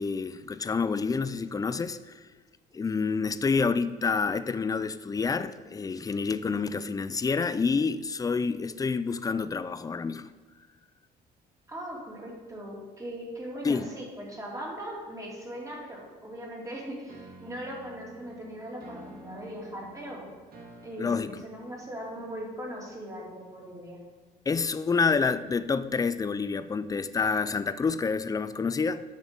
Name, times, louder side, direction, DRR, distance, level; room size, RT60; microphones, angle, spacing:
voice 1, 0.0-2.2 2.7-10.3 13.6-13.9 21.0-21.3 24.5-29.0, left 5 dB, 20° left, 0.4 m, -28 dB
voice 2, 11.7-20.3 20.8-24.0, equal, 20° right, 2.9 m, -39 dB
sound 1, 17.1-23.9, right 2 dB, 55° right, 2.0 m, -51 dB
9.2 x 6.5 x 5.3 m
cardioid pair, 125°, 18 cm